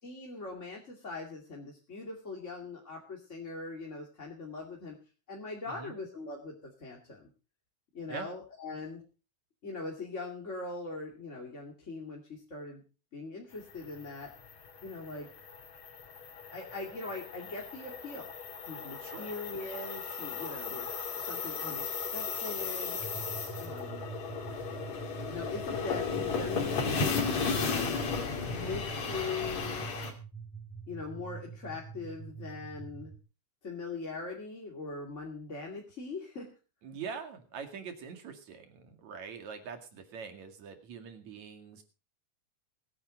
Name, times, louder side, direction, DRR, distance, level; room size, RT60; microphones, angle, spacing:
voice 1, 0.0-5.0 5.3-7.3 7.9-9.0 9.6-12.8 13.1-14.3 14.8-15.3 16.5-18.3 18.7-23.0 23.5-24.1 25.3-28.0 28.5-29.9 30.9-33.1 33.6-36.5, left 3 dB, 25° left, -1 dB, 2.5 m, -41 dB
sound 1, 13.6-30.1, left 5 dB, 65° left, 3.9 m, -35 dB
sound 2, 23.0-33.2, right 6 dB, ahead, 2.1 m, -45 dB
voice 2, 36.8-41.8, right 6 dB, 65° right, 6 dB, 3.4 m, -43 dB
23.5 x 9.7 x 3.9 m, 0.34 s
omnidirectional pair, 3.5 m